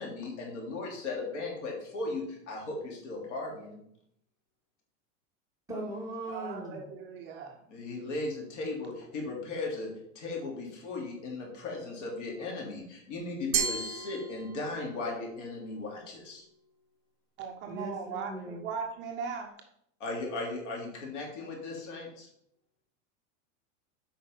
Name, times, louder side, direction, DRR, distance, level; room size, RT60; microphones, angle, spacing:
voice 1, 0.0-3.8 7.7-9.9 10.1-16.4 20.0-22.3, left 3 dB, 65° left, 3.3 m, -37 dB
voice 2, 5.7-6.8 17.7-18.6, right 1 dB, 10° right, 2.2 m, -39 dB
voice 3, 6.3-7.6 17.4-19.5, right 6 dB, 30° right, 0.7 m, -38 dB
Glass, 13.5-15.0, right 7 dB, 50° right, 1.3 m, -33 dB
8.3 x 5.2 x 5.5 m
supercardioid pair, 165°, 40 cm